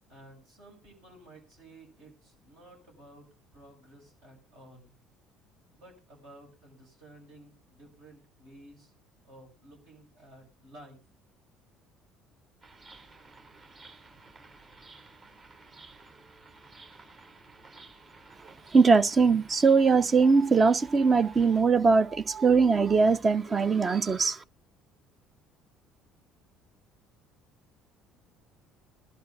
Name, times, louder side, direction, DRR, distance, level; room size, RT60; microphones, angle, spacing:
voice 1, 0.1-3.3 3.5-4.9 5.7-8.9 9.2-11.0, right 1 dB, 70° right, 6.9 m, -53 dB
sound 1, 12.6-21.6, right 3 dB, 50° right, 5.7 m, -53 dB
voice 2, 18.7-24.4, right 4 dB, 30° right, 0.6 m, -21 dB
21.5 x 12.0 x 2.5 m
figure-of-eight pair, 55°, 0 cm